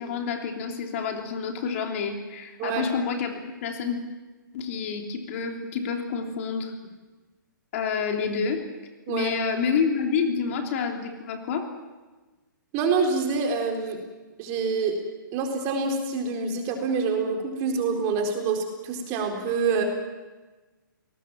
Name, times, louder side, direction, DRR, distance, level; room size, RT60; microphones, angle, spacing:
voice 1, 0.0-4.0 4.5-6.7 7.7-8.6 9.1-11.7, left 5 dB, 40° left, 3 dB, 3.2 m, -28 dB
voice 2, 12.7-14.0 14.4-14.9 15.3-19.8, right 5 dB, 25° right, 2 dB, 4.2 m, -26 dB
28.0 x 19.5 x 7.5 m, 1.2 s
hypercardioid pair, 155°, 11 cm